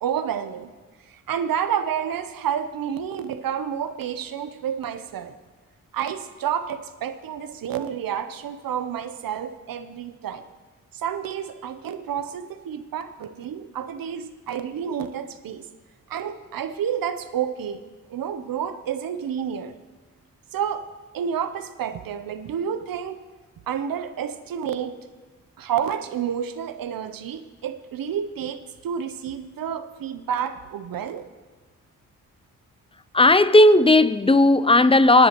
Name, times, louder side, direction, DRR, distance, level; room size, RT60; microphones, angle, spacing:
voice 1, 0.0-0.7 1.1-5.4 5.9-10.4 10.9-15.7 16.1-17.8 18.1-19.8 20.5-20.9 21.1-23.2 23.7-25.0 25.6-31.2, right 8 dB, 85° right, 0.7 m, -29 dB
voice 2, 33.1-35.3, left 2 dB, 15° left, 0.5 m, -15 dB
19.0 x 10.0 x 3.0 m
cardioid pair, 50°, 33 cm